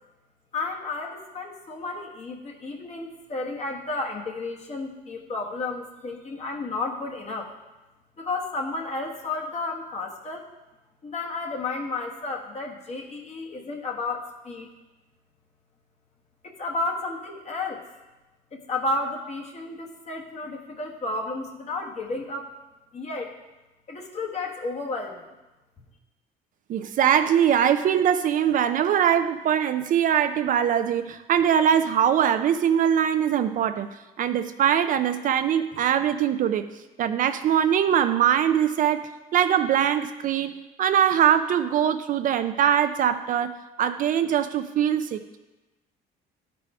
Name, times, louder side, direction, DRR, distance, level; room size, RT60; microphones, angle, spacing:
voice 1, 0.5-7.5 8.2-10.5 11.0-14.7 16.4-17.8 18.5-22.5 22.9-23.3 23.9-25.2, left 3 dB, 40° left, 0 dB, 1.3 m, -32 dB
voice 2, 26.7-33.9 34.2-36.7 37.0-45.4, right 9 dB, 50° right, 9 dB, 0.4 m, -22 dB
11.5 x 4.8 x 4.8 m, 1.1 s
cardioid pair, 110°, 17 cm